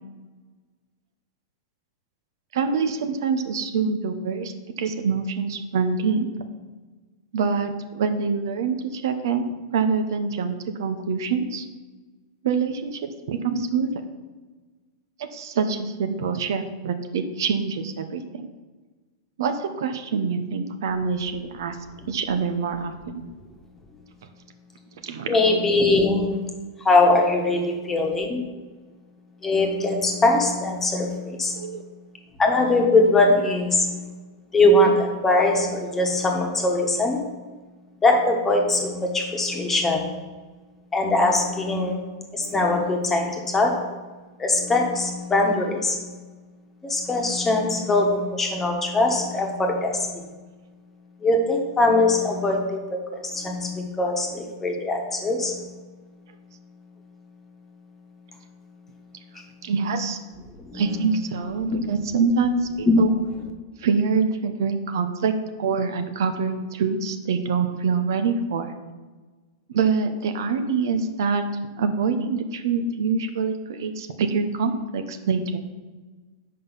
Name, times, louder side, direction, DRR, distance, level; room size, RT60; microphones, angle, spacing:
voice 1, 2.5-6.3 7.3-9.4 9.7-11.6 12.4-13.9 15.2-18.4 19.4-21.8 22.1-23.3 25.0-25.4 27.5-27.6 31.6-31.8 59.6-60.2 60.7-63.1 63.8-65.3 65.6-68.7 69.7-71.4 71.8-75.6, right 5 dB, 75° right, 8 dB, 0.8 m, -25 dB
voice 2, 25.3-26.3 26.8-28.4 29.4-31.7 32.4-34.1 34.5-37.2 38.0-40.1 40.9-42.0 42.3-43.8 44.4-46.1 46.8-50.2 51.2-55.6 60.7-60.8, left 2 dB, 15° left, 1 dB, 1.3 m, -21 dB
7.6 x 5.5 x 5.7 m, 1.3 s
supercardioid pair, 145°, 2 cm